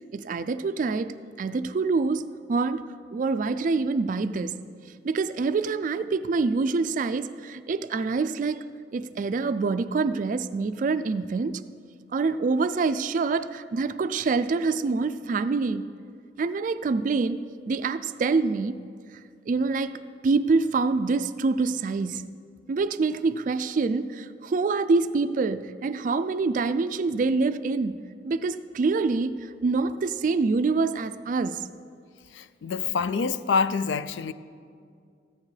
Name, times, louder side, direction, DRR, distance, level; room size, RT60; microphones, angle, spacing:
voice 1, 0.1-2.9 3.1-4.6 5.0-8.6 8.9-11.6 12.1-15.8 16.4-17.4 17.7-18.8 19.5-20.0 20.2-22.2 22.7-28.0 28.2-29.4 29.6-31.6, right 4 dB, 45° right, 0.3 m, -26 dB
voice 2, 32.3-34.3, left 5 dB, 85° left, 0.4 m, -26 dB
14.5 x 9.5 x 3.3 m
head